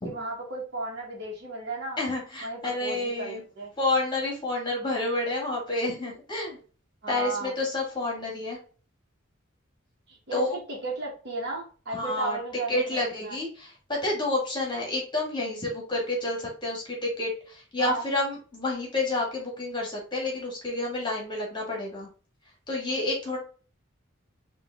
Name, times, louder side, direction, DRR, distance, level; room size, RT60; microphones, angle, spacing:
voice 1, 0.0-2.0 2.4-3.7 7.0-7.5 10.1-13.4 17.8-18.1, right 2 dB, 55° right, -3 dB, 1.2 m, -35 dB
voice 2, 2.0-3.4 3.8-6.6 7.1-8.6 10.3-10.5 11.9-12.4 12.7-22.1 22.7-23.4, left 2 dB, 25° left, -2 dB, 1.5 m, -29 dB
5.2 x 2.5 x 3.4 m, 0.38 s
head